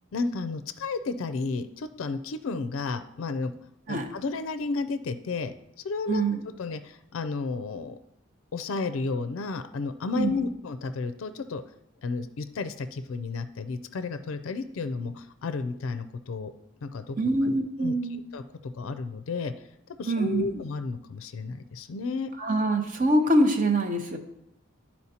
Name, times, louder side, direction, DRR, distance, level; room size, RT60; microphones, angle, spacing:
voice 1, 0.1-3.5 3.9-5.5 5.8-6.2 6.6-8.0 8.5-11.6 12.0-16.5 16.8-17.2 17.8-19.5 19.9-22.3, left 4 dB, 75° left, 10 dB, 0.4 m, -32 dB
voice 2, 6.1-6.4 10.2-10.4 17.2-18.2 20.1-20.6 22.4-24.2, right 1 dB, 40° right, 5 dB, 0.7 m, -24 dB
12.0 x 4.3 x 2.8 m, 0.82 s
head